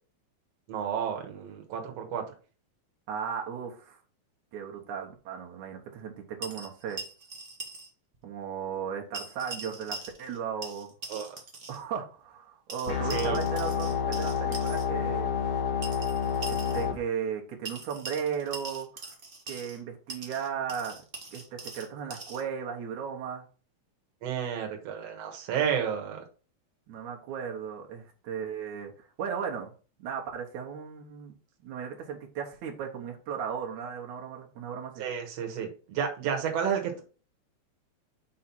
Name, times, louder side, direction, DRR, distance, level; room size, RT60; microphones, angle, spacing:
voice 1, 0.7-2.2 11.1-11.4 13.1-13.4 24.2-26.2 35.0-37.0, right 8 dB, 65° right, 2 dB, 2.3 m, -31 dB
voice 2, 3.1-4.0 4.5-7.0 8.2-10.9 11.7-15.3 16.5-19.2 19.5-21.0 21.3-23.4 26.9-29.7 30.0-31.3 31.6-35.0, right 7 dB, 85° right, 1 dB, 2.6 m, -36 dB
sound 1, 6.4-7.9 8.1-8.2 9.1-10.4 10.6-11.8 12.7-14.8 15.8-16.9 17.6-19.8 20.1-22.4, right 3 dB, 45° right, 0.7 m, -42 dB
sound 2, 12.9-16.9, left 7 dB, 40° left, 1.7 m, -29 dB
5.5 x 5.0 x 4.4 m, 0.37 s
omnidirectional pair, 3.3 m